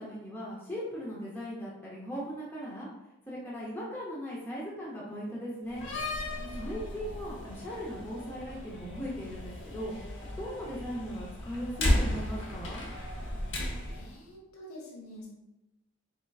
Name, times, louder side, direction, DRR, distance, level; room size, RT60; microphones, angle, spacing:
voice 1, 0.0-2.9 3.3-5.8 6.6-12.8, equal, 10° left, -7 dB, 0.6 m, -38 dB
Slam, 5.7-14.1, left 1 dB, 60° left, 0.8 m, -34 dB
voice 2, 6.4-6.7 13.9-15.3, equal, 80° left, -2 dB, 0.9 m, -47 dB
4.2 x 3.7 x 2.3 m, 0.97 s
head